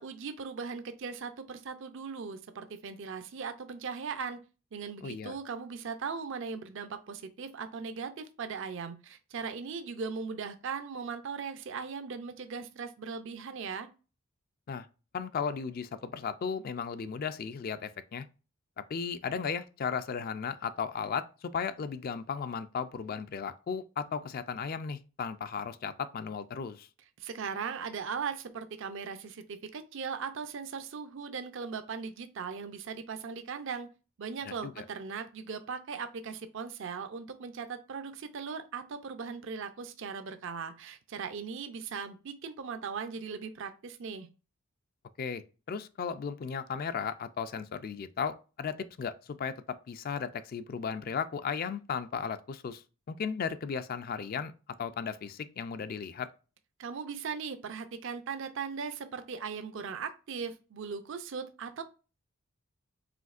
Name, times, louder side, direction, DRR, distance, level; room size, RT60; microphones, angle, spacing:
voice 1, 0.0-4.4 4.7-13.9 27.2-33.9 34.2-44.3 56.8-61.8, right 5 dB, 60° right, 0.5 m, -39 dB
voice 2, 5.0-5.4 14.7-14.9 15.1-18.2 18.9-26.9 34.5-34.9 45.2-52.8 53.1-54.5 54.8-56.3, left 6 dB, 45° left, 0.3 m, -35 dB
5.0 x 3.5 x 2.4 m
head